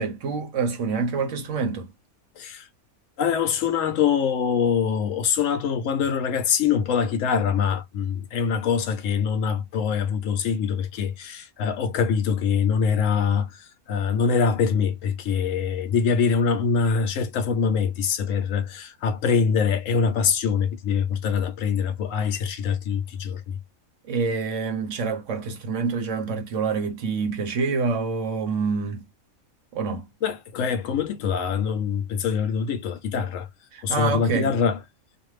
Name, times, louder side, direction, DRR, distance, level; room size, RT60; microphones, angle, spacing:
voice 1, 0.0-1.9 24.1-29.0 29.7-30.1 33.7-34.5, right 4 dB, 65° right, 1.1 m, -26 dB
voice 2, 2.4-2.7 3.2-23.6 30.2-33.5 33.8-34.8, left 6 dB, 70° left, 0.9 m, -24 dB
2.5 x 2.5 x 3.0 m
omnidirectional pair, 1.5 m